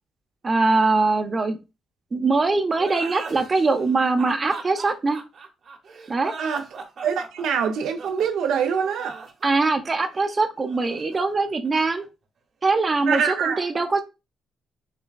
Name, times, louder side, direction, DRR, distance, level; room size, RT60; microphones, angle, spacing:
voice 1, 0.4-1.6 2.1-5.2 6.1-6.3 9.4-12.0 12.6-14.0, right 3 dB, 35° right, 0.7 m, -22 dB
sound 1, 2.8-12.0, right 4 dB, 55° right, 1.0 m, -39 dB
voice 2, 7.0-9.2 13.1-13.7, right 7 dB, 80° right, 0.6 m, -24 dB
6.6 x 2.3 x 2.3 m
cardioid pair, 90°, 0 cm